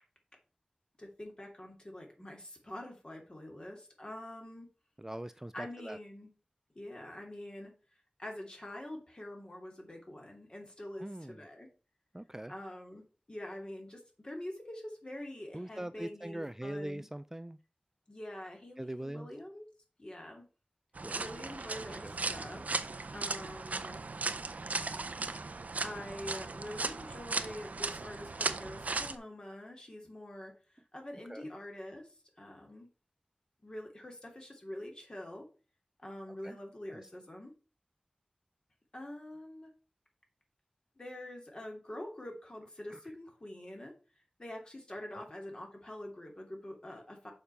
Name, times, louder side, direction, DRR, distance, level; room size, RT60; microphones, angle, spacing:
voice 1, 1.0-4.7 5.5-6.3 6.7-7.7 8.2-11.7 12.5-17.1 18.1-19.7 20.0-20.5 21.1-22.6 23.1-24.0 25.8-32.9 33.6-35.5 36.0-37.5 38.9-39.7 41.0-43.9 44.4-47.3, left 1 dB, 35° left, 1 dB, 2.9 m, -45 dB
voice 2, 5.0-6.0 11.0-11.4 12.1-12.5 15.5-17.6 18.8-19.3 21.0-21.2 22.0-22.1 31.3-31.5 36.3-36.6 36.9-37.0 42.9-43.0 45.1-45.2, right 1 dB, 15° right, 13 dB, 0.3 m, -42 dB
sound 1, 20.9-29.1, right 3 dB, 75° right, 0.7 m, -37 dB
7.0 x 5.2 x 5.7 m, 0.35 s
wide cardioid pair, 70°, 3 cm